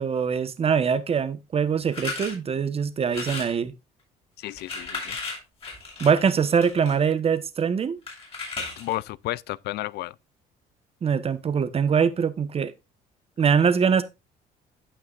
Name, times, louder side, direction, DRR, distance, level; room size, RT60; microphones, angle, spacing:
voice 1, 0.0-3.7 6.0-8.0 11.0-12.7 13.4-14.0, right 6 dB, 35° right, 1.1 m, -23 dB
sound 1, 1.9-2.3 3.1-3.6 4.4-6.9 8.1-9.0, left 3 dB, 35° left, 7.0 m, -34 dB
voice 2, 4.4-5.2 8.8-10.1, left 16 dB, 75° left, 0.4 m, -32 dB
16.0 x 5.9 x 2.4 m
cardioid pair, 110°, 17 cm